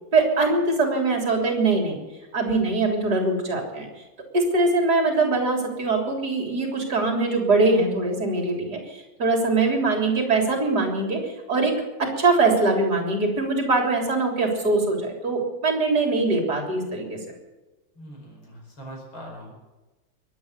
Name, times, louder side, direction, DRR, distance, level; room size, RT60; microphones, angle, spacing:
voice 1, 0.1-2.0 2.3-3.9 4.3-11.2 11.5-11.7 12.0-17.2, right 3 dB, 50° right, 2 dB, 4.0 m, -22 dB
voice 2, 18.0-19.5, equal, 70° left, 0 dB, 6.1 m, -41 dB
22.5 x 9.4 x 6.7 m, 1.1 s
omnidirectional pair, 2.3 m